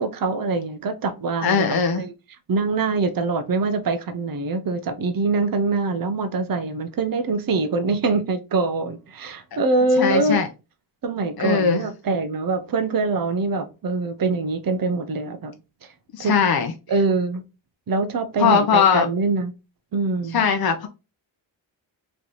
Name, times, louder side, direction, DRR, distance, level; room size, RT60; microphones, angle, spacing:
voice 1, 0.0-2.1 2.5-10.4 11.0-15.5 16.2-16.3 16.9-17.4 17.9-19.5 19.9-20.4, right 3 dB, 45° right, 0.8 m, -24 dB
voice 2, 1.4-2.0 10.0-10.5 11.4-11.8 16.1-16.7 18.4-19.1 20.3-20.9, left 6 dB, 50° left, 0.7 m, -19 dB
3.2 x 3.0 x 4.0 m
cardioid pair, 75°, 47 cm